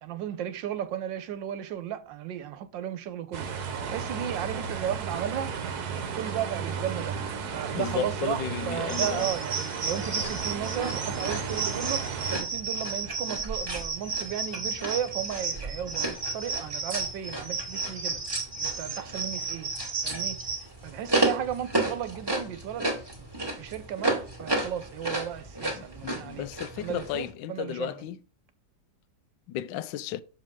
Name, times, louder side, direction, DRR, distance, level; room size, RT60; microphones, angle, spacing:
voice 1, 0.0-5.5 6.0-7.2 7.5-18.2 18.6-19.7 20.0-20.4 20.8-22.9 23.2-23.3 23.6-26.5 26.8-27.9, right 10 dB, 80° right, 1.4 m, -34 dB
sound 1, 3.3-12.4, right 6 dB, 60° right, 1.4 m, -34 dB
voice 2, 7.7-9.3 25.8-28.2 29.5-30.2, left 11 dB, 80° left, 1.2 m, -34 dB
sound 2, 8.9-20.7, right 4 dB, 40° right, 1.7 m, -33 dB
sound 3, 10.2-27.3, right 2 dB, 10° right, 1.9 m, -34 dB
7.4 x 6.2 x 3.7 m
omnidirectional pair, 2.0 m